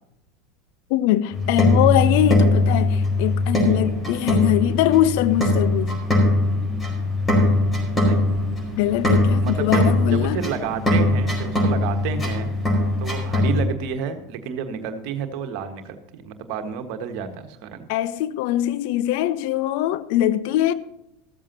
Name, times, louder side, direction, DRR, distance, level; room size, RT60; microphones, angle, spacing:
voice 1, 0.9-6.0 8.8-10.4 17.9-20.7, left 13 dB, 55° left, 0.6 m, -22 dB
sound 1, 1.3-13.7, left 2 dB, 15° left, 4.7 m, -21 dB
voice 2, 9.4-12.5 13.0-17.9, right 7 dB, 50° right, 1.5 m, -30 dB
14.5 x 14.0 x 2.9 m
figure-of-eight pair, 80°, 0 cm